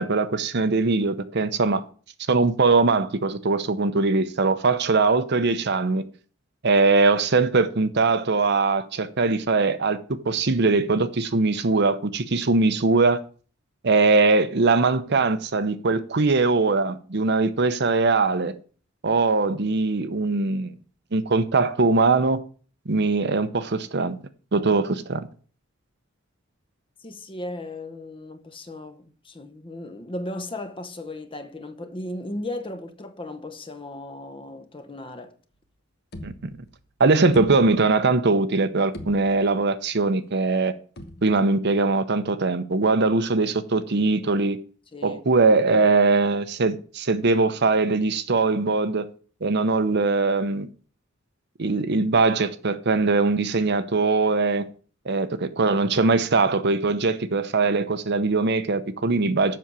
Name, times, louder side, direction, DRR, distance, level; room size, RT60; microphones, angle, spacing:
voice 1, 0.0-1.8 2.3-6.0 6.6-13.2 13.8-18.5 19.0-20.7 21.1-22.4 22.9-24.2 24.5-25.3 36.2-36.5 37.0-40.7 41.2-44.6 45.0-49.1 49.4-50.7 51.6-54.6 55.1-59.6, right 3 dB, 55° right, 0.8 m, -21 dB
voice 2, 27.0-35.4 44.9-45.2 55.1-55.2, left 1 dB, 25° left, 0.9 m, -36 dB
sound 1, 35.5-35.7 36.1-36.9 37.3-38.1 38.5-38.6 38.9-39.7 41.0-41.6, left 1 dB, 55° left, 1.2 m, -42 dB
7.6 x 6.2 x 6.8 m
head